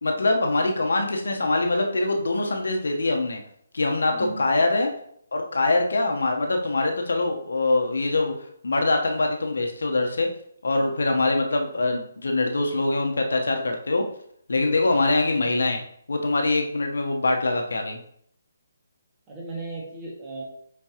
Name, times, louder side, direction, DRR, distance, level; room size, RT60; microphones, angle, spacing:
voice 1, 0.0-3.4 3.7-4.9 5.3-8.3 8.6-10.3 10.6-14.0 14.5-15.8 16.1-18.0, left 2 dB, 70° left, 3 dB, 1.0 m, -23 dB
voice 2, 4.1-4.4 19.3-20.4, right 3 dB, 25° right, -3 dB, 1.9 m, -36 dB
7.1 x 4.5 x 2.9 m, 0.67 s
figure-of-eight pair, 145°, 0 cm